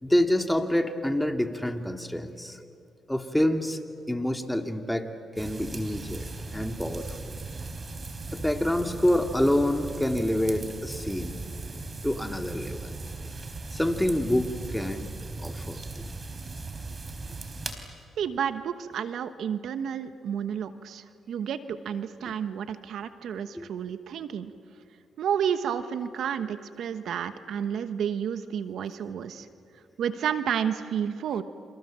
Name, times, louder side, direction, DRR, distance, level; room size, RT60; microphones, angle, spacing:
voice 1, 0.0-2.6 3.1-3.8 4.1-5.1 5.4-7.3 8.3-11.4 12.0-12.9 13.7-15.1 15.4-16.1 22.2-22.3 23.5-23.7, left 1 dB, 5° left, 5 dB, 2.4 m, -27 dB
sound 1, 5.4-17.7, right 3 dB, 35° right, 4.1 m, -38 dB
voice 2, 18.2-24.5 25.2-29.5 30.0-31.4, right 8 dB, 75° right, 11 dB, 1.1 m, -31 dB
29.0 x 27.0 x 7.5 m, 2.4 s
supercardioid pair, 65°, 0 cm